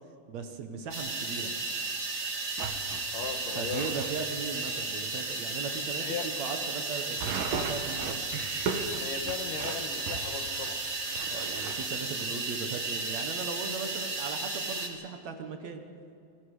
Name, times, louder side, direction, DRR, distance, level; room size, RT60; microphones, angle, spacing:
voice 1, 0.3-1.5 3.6-8.3 11.3-15.8, right 5 dB, 60° right, 6 dB, 2.3 m, -38 dB
sound 1, 0.9-14.9, right 3 dB, 30° right, 1.9 m, -34 dB
sound 2, 2.6-4.1 4.6-4.7 5.1-5.3 5.7-5.8 7.2-11.9, right 5 dB, 85° right, 3.0 m, -37 dB
voice 2, 3.1-3.9 6.0-6.3 9.0-10.8, left 6 dB, 75° left, 5 dB, 3.2 m, -37 dB
28.0 x 20.5 x 5.0 m, 2.4 s
omnidirectional pair, 3.8 m